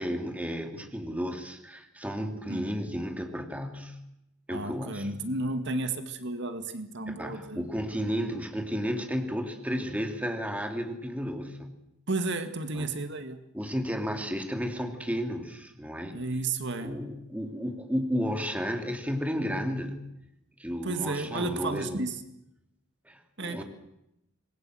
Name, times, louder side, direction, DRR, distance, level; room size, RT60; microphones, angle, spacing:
voice 1, 0.0-4.0 4.5-5.1 7.1-11.8 12.8-12.9 13.5-16.2 16.8-20.1 20.6-22.0 23.1-23.6, equal, 5° right, 5 dB, 2.8 m, -33 dB
voice 2, 4.5-7.8 12.1-13.5 16.1-17.0 20.8-22.2 23.4-23.6, right 2 dB, 60° right, 9 dB, 2.0 m, -33 dB
26.5 x 21.0 x 7.8 m, 0.83 s
head